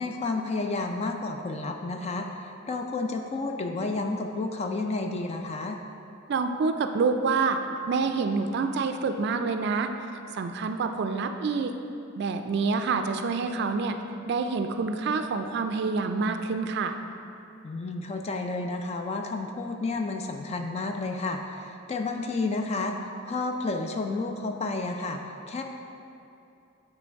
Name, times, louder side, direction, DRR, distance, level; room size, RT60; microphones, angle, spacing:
voice 1, 0.0-5.8 17.6-25.2 25.5-25.6, left 3 dB, 35° left, 4 dB, 0.4 m, -31 dB
voice 2, 6.3-7.6 7.9-11.7 12.2-14.0 14.3-17.0, right 4 dB, 60° right, 7 dB, 0.3 m, -27 dB
8.5 x 3.2 x 4.5 m, 2.7 s
head